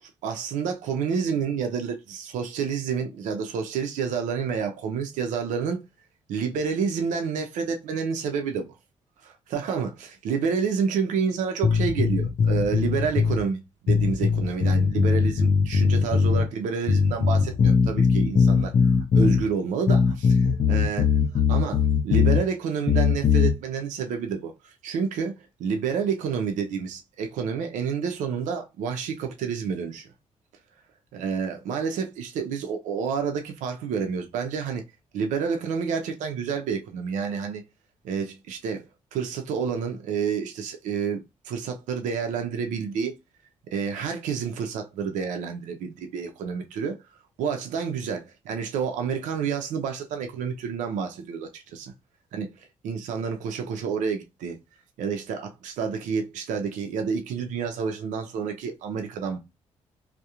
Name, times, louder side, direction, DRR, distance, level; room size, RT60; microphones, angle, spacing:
voice 1, 0.2-5.8 6.3-8.7 9.2-21.2 21.5-30.1 31.1-34.8 35.1-37.6 38.0-38.9 39.1-43.1 43.7-47.0 47.4-51.9 52.3-52.5 52.8-54.6 55.0-59.4, right 6 dB, 90° right, 0.4 m, -29 dB
sound 1, 11.6-13.4 13.9-16.5 16.9-19.4 19.9-22.4 22.9-23.5, left 5 dB, 50° left, 0.5 m, -20 dB
2.3 x 2.0 x 2.8 m
cardioid pair, 75°, 12 cm